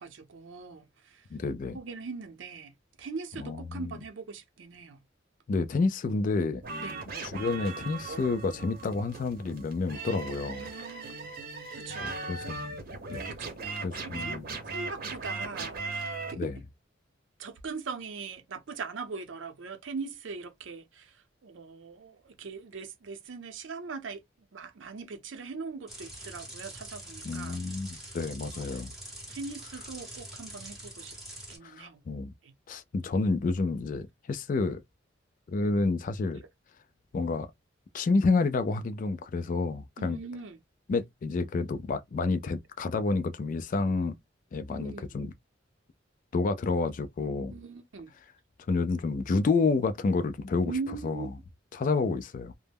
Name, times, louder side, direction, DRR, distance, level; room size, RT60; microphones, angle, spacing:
voice 1, 0.0-1.3 1.7-2.7 3.0-5.0 6.8-7.0 8.1-8.3 10.5-11.3 11.7-12.1 13.2-13.6 14.0-16.5 17.4-24.2 24.5-27.6 28.5-28.6 29.3-31.2 31.5-32.0 32.4-32.5 40.0-40.6 44.7-45.1 47.5-48.1 50.6-51.4, right 4 dB, 85° right, 0.6 m, -41 dB
voice 2, 1.3-1.8 3.4-4.0 5.5-6.6 7.2-10.7 12.0-12.8 13.1-13.2 13.8-14.5 16.4-16.6 27.2-28.9 31.6-32.3 32.7-34.8 35.5-36.4 37.1-37.5 37.9-40.2 40.9-44.1 44.5-45.3 46.3-47.5 48.7-50.8 51.0-51.3 51.7-52.5, left 3 dB, 45° left, 0.3 m, -29 dB
sound 1, 6.6-16.3, right 3 dB, 50° right, 0.8 m, -38 dB
sound 2, 25.9-31.6, right 1 dB, ahead, 0.9 m, -44 dB
2.2 x 2.0 x 3.3 m
head